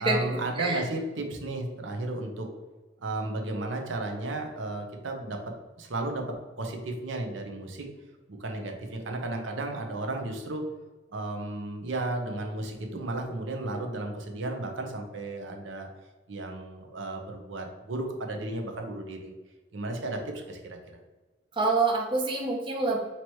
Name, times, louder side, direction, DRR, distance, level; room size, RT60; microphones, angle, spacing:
voice 1, 0.0-2.5 3.0-5.4 5.8-7.9 8.3-10.6 11.1-15.9 16.3-19.3 19.7-20.8, right 2 dB, 85° right, 3 dB, 0.7 m, -34 dB
voice 2, 21.6-23.0, right 3 dB, 25° right, 1 dB, 0.5 m, -26 dB
2.9 x 2.9 x 4.5 m, 1.2 s
head